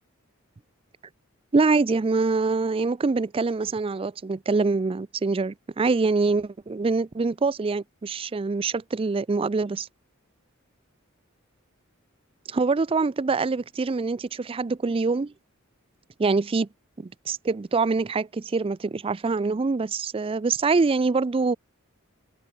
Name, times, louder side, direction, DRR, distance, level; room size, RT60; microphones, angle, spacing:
voice 1, 1.5-9.9 12.5-15.3 16.2-16.7 17.0-21.6, right 4 dB, 25° right, 0.4 m, -24 dB
head